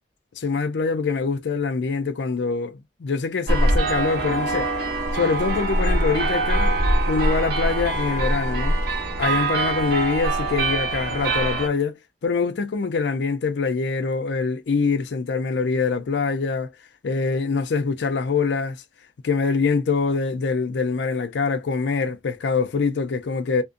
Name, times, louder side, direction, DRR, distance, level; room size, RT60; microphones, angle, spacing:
voice 1, 0.4-4.7 5.1-6.8 7.1-8.8 9.2-16.7 17.0-18.8 19.2-23.6, left 4 dB, 75° left, 0.5 m, -24 dB
sound 1, 3.5-11.7, right 2 dB, 65° right, 0.7 m, -23 dB
2.5 x 2.1 x 2.5 m
head